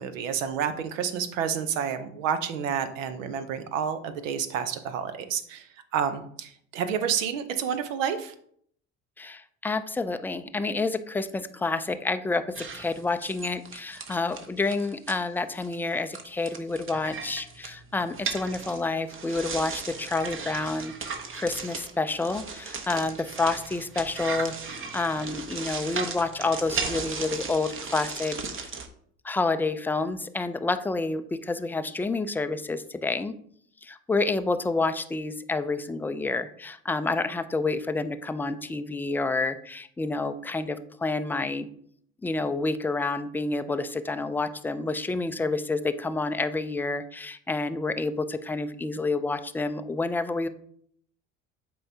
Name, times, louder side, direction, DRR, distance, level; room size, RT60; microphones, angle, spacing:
voice 1, 0.0-8.3, right 8 dB, 80° right, 10 dB, 0.8 m, -29 dB
voice 2, 9.2-28.7 29.2-33.3 33.8-41.7 42.2-50.5, left 3 dB, 5° left, 10 dB, 0.3 m, -29 dB
sound 1, 12.5-15.2 15.6-15.8 16.1-28.9, right 5 dB, 35° right, 0.9 m, -36 dB
7.6 x 4.7 x 2.7 m, 0.63 s
hypercardioid pair, 70°, 38 cm